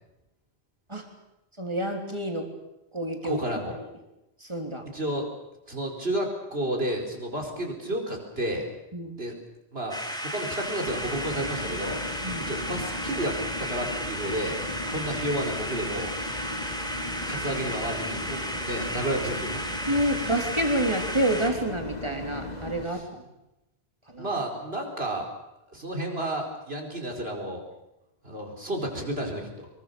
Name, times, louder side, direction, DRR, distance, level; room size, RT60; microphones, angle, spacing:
voice 1, 1.6-2.5 2.9-3.4 4.4-4.8 8.9-9.2 12.2-12.5 17.3-17.4 19.9-23.2 24.1-24.3, right 1 dB, 25° right, 3 dB, 3.5 m, -28 dB
voice 2, 3.2-3.8 4.9-5.3 5.7-8.7 9.2-9.4 9.7-12.0 12.5-14.6 14.9-16.1 17.3-19.7 22.8-23.1 24.2-25.3 25.7-27.6 28.2-29.7, right 1 dB, 65° right, 2 dB, 4.9 m, -31 dB
sound 1, 9.9-21.5, equal, 5° left, 3.6 m, -34 dB
sound 2, 10.9-22.8, left 2 dB, 40° left, 2.6 m, -37 dB
25.0 x 22.5 x 7.0 m, 0.93 s
omnidirectional pair, 1.1 m